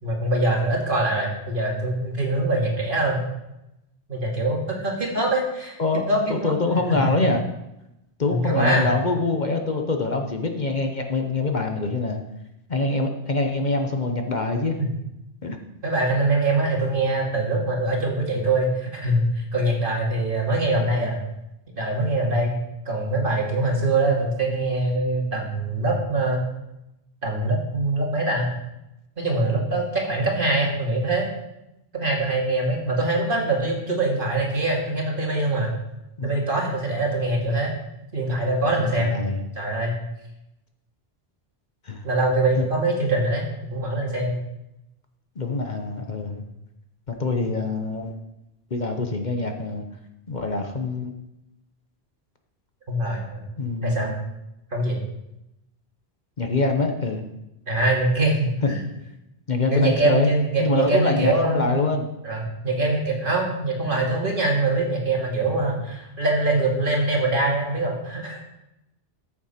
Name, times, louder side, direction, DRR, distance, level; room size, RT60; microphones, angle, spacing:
voice 1, 0.0-3.2 4.1-5.8 6.1-6.5 6.9-7.1 8.3-8.9 14.8-14.9 15.8-21.2 21.8-22.6 22.9-26.4 27.2-28.5 29.2-31.3 31.9-35.7 36.2-37.7 38.1-39.1 39.6-40.0 42.0-43.4 43.7-44.4 52.9-53.4 53.8-54.1 54.7-55.0 57.7-58.8 59.7-61.9 62.2-68.4, right 2 dB, 50° right, -1 dB, 2.5 m, -23 dB
voice 2, 6.3-7.4 8.2-12.2 12.7-14.8 15.4-15.6 20.8-21.1 36.2-36.3 38.7-39.4 41.9-42.0 42.6-42.7 45.4-46.4 47.1-48.2 48.7-49.8 50.3-51.1 53.6-54.1 56.4-57.2 58.6-58.7 59.5-60.3 60.6-62.1 63.9-64.1, left 3 dB, 45° left, 4 dB, 1.1 m, -25 dB
14.0 x 7.3 x 4.3 m, 0.90 s
omnidirectional pair, 1.1 m